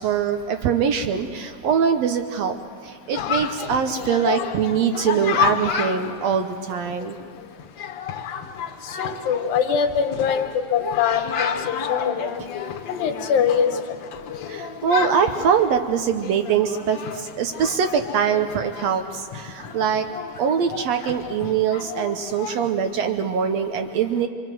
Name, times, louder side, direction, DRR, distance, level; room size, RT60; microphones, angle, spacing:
voice 1, 0.0-2.6 2.8-7.2 12.4-12.5 14.5-20.1 20.4-24.3, right 7 dB, 80° right, 7 dB, 1.5 m, -23 dB
Chatter, 3.1-22.7, left 7 dB, 60° left, 2.0 m, -31 dB
voice 2, 9.0-12.3 13.0-13.7, left 7 dB, 80° left, 5 dB, 3.0 m, -23 dB
26.5 x 25.0 x 7.6 m, 2.2 s
omnidirectional pair, 4.1 m